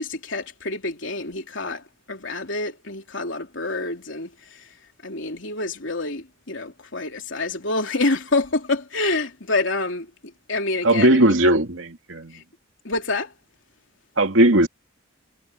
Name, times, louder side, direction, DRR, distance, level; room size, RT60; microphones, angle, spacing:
voice 1, 0.0-4.7 5.0-11.3 12.3-12.4 12.8-13.3, left 2 dB, 70° left, 3.2 m, -27 dB
voice 2, 10.8-12.4 14.2-14.7, right 1 dB, 80° right, 2.3 m, -18 dB
head